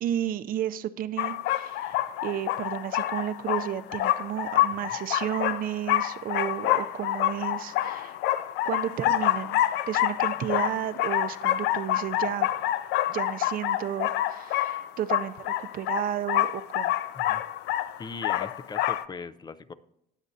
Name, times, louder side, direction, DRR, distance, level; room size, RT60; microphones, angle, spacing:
voice 1, 0.0-2.0 2.2-8.2 8.6-9.6 9.9-12.5 13.1-16.9, right 11 dB, 55° right, 12 dB, 0.6 m, -32 dB
sound 1, 1.2-19.0, left 13 dB, 85° left, 0.5 m, -27 dB
voice 2, 18.0-19.7, left 4 dB, 25° left, 15 dB, 0.5 m, -39 dB
19.5 x 7.3 x 2.7 m, 0.78 s
cardioid pair, 110°, 17 cm